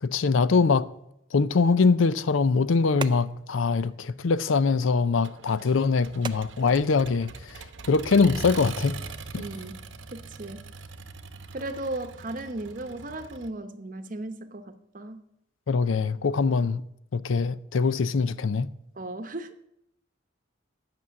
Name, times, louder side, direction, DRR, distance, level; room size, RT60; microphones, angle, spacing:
voice 1, 0.0-0.9 1.3-9.0 9.3-9.5 15.7-16.8 17.1-18.7, left 4 dB, 80° left, 0.5 m, -23 dB
sound 1, 1.9-8.0, right 4 dB, 25° right, 0.4 m, -44 dB
Accelerating revving vroom, 5.2-13.5, right 4 dB, 70° right, 0.8 m, -42 dB
voice 2, 9.4-9.8 10.1-10.7 11.5-15.2 19.0-19.5, right 2 dB, 40° right, 0.8 m, -36 dB
11.0 x 6.1 x 8.3 m
head